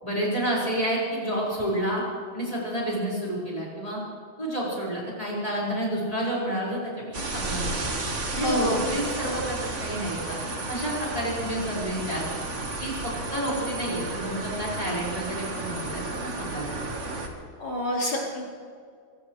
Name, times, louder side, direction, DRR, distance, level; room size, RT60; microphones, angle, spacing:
voice 1, 0.0-2.0 2.3-4.0 4.4-7.9 8.3-10.4 10.7-12.2 12.8-16.8, right 1 dB, 15° left, -5 dB, 5.5 m, -30 dB
sound 1, 7.1-17.3, right 2 dB, 35° right, 1.8 m, -32 dB
voice 2, 8.3-8.9 17.6-18.4, left 1 dB, 75° left, -5 dB, 5.1 m, -28 dB
24.5 x 16.5 x 3.3 m, 2.2 s
omnidirectional pair, 2.3 m